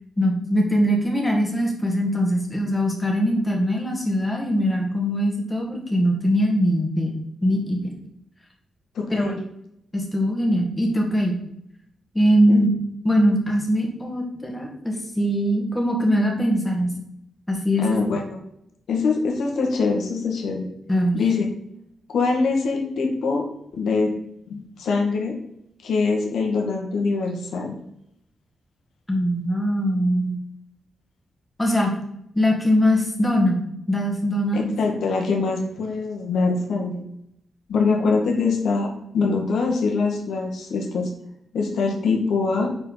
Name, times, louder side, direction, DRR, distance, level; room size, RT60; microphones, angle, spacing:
voice 1, 0.2-7.1 7.4-7.9 9.1-9.3 9.9-11.4 12.1-12.7 13.0-16.9 17.5-18.0 20.9-21.2 29.1-30.4 31.6-31.9 32.3-33.6 33.9-34.7, equal, 10° left, 0 dB, 1.9 m, -21 dB
voice 2, 8.9-9.4 12.5-12.6 17.8-18.4 18.9-20.7 21.1-21.4 22.1-23.5 23.7-24.1 24.5-25.4 25.8-27.7 34.5-37.0 37.7-41.1 41.5-42.7, left 4 dB, 80° left, 1 dB, 1.8 m, -23 dB
9.9 x 4.5 x 4.0 m, 0.76 s
wide cardioid pair, 150°, 0 cm